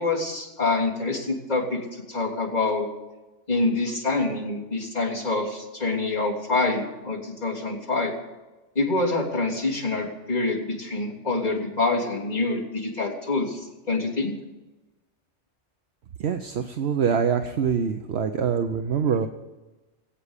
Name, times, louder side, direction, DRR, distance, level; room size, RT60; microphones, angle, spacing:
voice 1, 0.0-2.9 3.5-8.1 8.8-14.3, left 3 dB, 35° left, -4 dB, 3.3 m, -26 dB
voice 2, 16.2-19.3, right 7 dB, 65° right, 7 dB, 1.0 m, -24 dB
19.5 x 8.5 x 8.3 m, 1.1 s
omnidirectional pair, 1.2 m